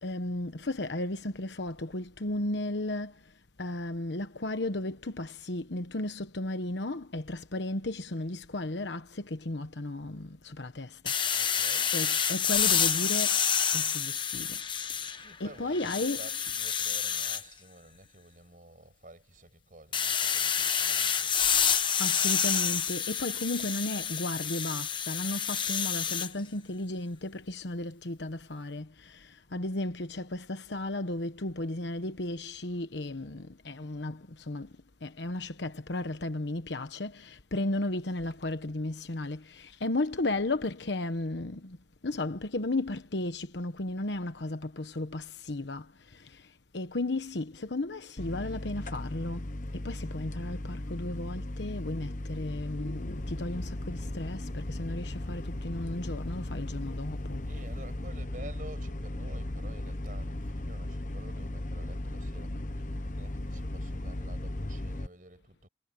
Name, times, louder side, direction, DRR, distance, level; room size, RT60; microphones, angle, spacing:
voice 1, 0.0-3.3 3.6-11.1 11.4-13.5 13.7-14.6 14.9-15.1 15.4-16.4 22.0-34.7 35.0-41.8 42.0-57.5, left 2 dB, 85° left, 1.2 m, -34 dB
sound 1, 11.1-15.3 15.7-17.4 19.9-26.3, left 8 dB, 25° left, 1.1 m, -28 dB
voice 2, 11.3-12.0 15.1-21.4 57.5-65.7, right 2 dB, 50° right, 6.4 m, -51 dB
sound 2, 48.2-65.1, left 1 dB, 45° left, 1.2 m, -36 dB
head